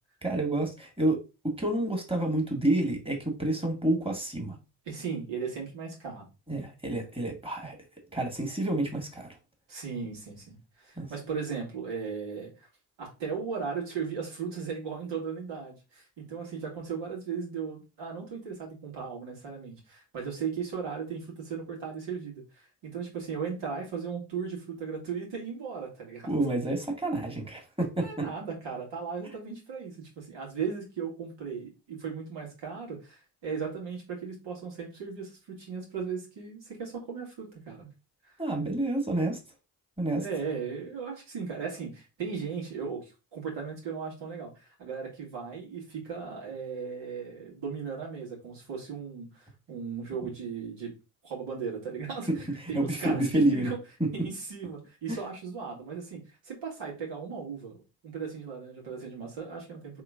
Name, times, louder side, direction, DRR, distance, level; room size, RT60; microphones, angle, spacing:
voice 1, 0.2-4.6 6.5-7.8 8.1-9.3 11.0-11.1 26.3-28.3 38.4-39.4 40.0-40.2 52.3-52.4 52.7-53.7 54.0-54.1 55.1-55.2, right 1 dB, 10° right, 2 dB, 1.8 m, -28 dB
voice 2, 4.9-6.3 9.7-12.7 13.0-26.3 28.0-37.9 38.2-38.4 40.2-50.9 51.2-53.8 54.1-60.0, right 6 dB, 75° right, -1 dB, 2.1 m, -37 dB
3.7 x 3.1 x 3.6 m, 0.29 s
supercardioid pair, 55°, 44 cm